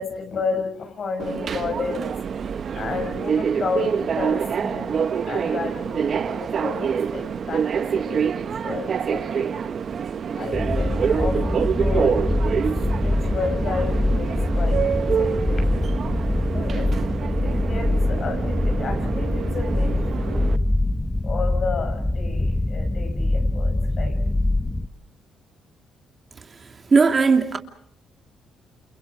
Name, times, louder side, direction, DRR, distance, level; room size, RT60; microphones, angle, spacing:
voice 1, 0.0-2.2 2.7-9.6 10.3-12.2 13.0-14.8 15.2-15.9 16.5-16.9 17.4-20.5 21.2-24.2, left 4 dB, 50° left, 6.9 m, -32 dB
Subway metro underground, 1.2-20.6, right 7 dB, 55° right, 1.1 m, -26 dB
sound 1, 10.5-24.9, left 1 dB, 10° left, 1.3 m, -24 dB
voice 2, 26.9-27.6, right 4 dB, 35° right, 2.8 m, -17 dB
30.0 x 29.0 x 5.0 m
cardioid pair, 90°, 0 cm